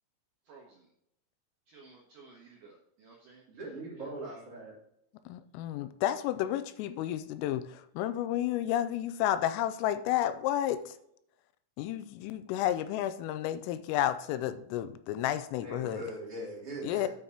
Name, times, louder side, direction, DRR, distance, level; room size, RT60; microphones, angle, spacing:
voice 1, 0.5-0.9 1.7-3.4 3.9-4.1, right 4 dB, 90° right, -2 dB, 1.8 m, -54 dB
voice 2, 3.5-4.7 15.6-17.1, right 1 dB, 35° right, -6 dB, 3.5 m, -41 dB
voice 3, 5.3-11.0 11.8-16.0 16.8-17.1, left 12 dB, 90° left, 12 dB, 3.2 m, -31 dB
9.3 x 8.5 x 3.0 m, 0.76 s
omnidirectional pair, 5.8 m